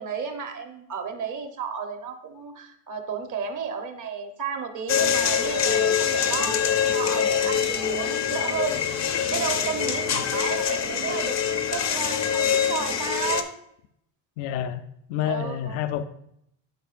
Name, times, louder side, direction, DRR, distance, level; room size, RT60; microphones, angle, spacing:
voice 1, 0.0-8.8 9.3-13.5 15.2-15.8, right 6 dB, 40° right, 6 dB, 1.0 m, -32 dB
sound 1, 4.9-13.4, left 8 dB, 35° left, 0.6 m, -24 dB
voice 2, 14.4-14.8 15.1-16.0, left 11 dB, 70° left, 9 dB, 0.6 m, -28 dB
10.5 x 4.5 x 2.5 m, 0.74 s
cardioid pair, 130°, 48 cm